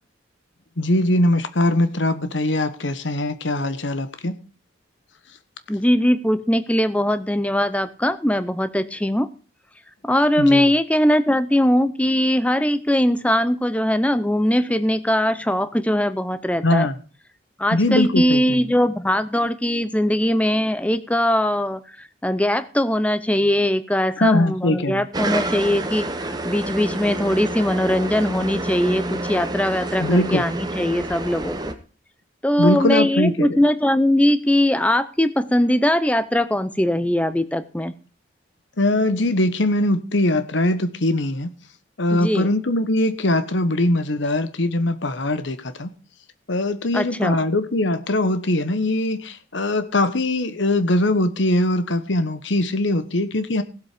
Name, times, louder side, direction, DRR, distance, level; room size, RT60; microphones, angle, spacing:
voice 1, 0.8-4.4 10.4-10.7 16.6-16.9 17.7-18.6 24.2-25.0 30.0-30.4 32.6-33.6 38.8-41.5 42.0-45.9 46.5-53.6, left 1 dB, 70° left, 11 dB, 1.2 m, -21 dB
voice 2, 5.7-9.3 10.0-16.9 17.6-31.7 32.4-37.9 42.1-42.5 46.9-47.4, left 1 dB, 5° left, 12 dB, 0.7 m, -20 dB
sound 1, 25.1-31.7, right 2 dB, 20° right, 1.1 m, -28 dB
16.0 x 7.8 x 5.0 m, 0.37 s
head